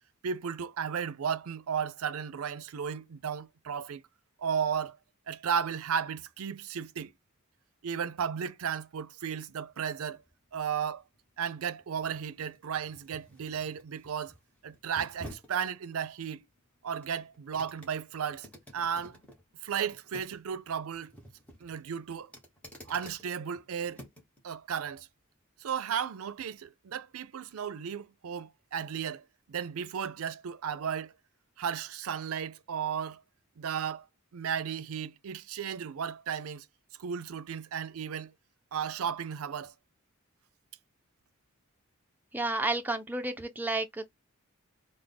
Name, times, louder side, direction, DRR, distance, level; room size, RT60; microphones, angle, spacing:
voice 1, 0.2-4.0 4.4-5.0 5.3-7.1 7.8-10.2 10.5-11.0 11.4-14.3 14.6-16.4 16.8-18.5 18.7-19.2 19.6-21.1 21.6-22.3 22.9-24.0 24.4-25.1 25.6-31.1 31.6-33.2 33.6-34.1 34.3-36.7 37.0-38.3 38.7-39.7, right 7 dB, 80° right, 0.5 m, -34 dB
sound 1, 9.7-24.4 24.8-25.0, equal, 5° left, 1.0 m, -53 dB
voice 2, 42.3-44.1, right 2 dB, 10° right, 0.5 m, -31 dB
3.4 x 2.1 x 3.8 m
head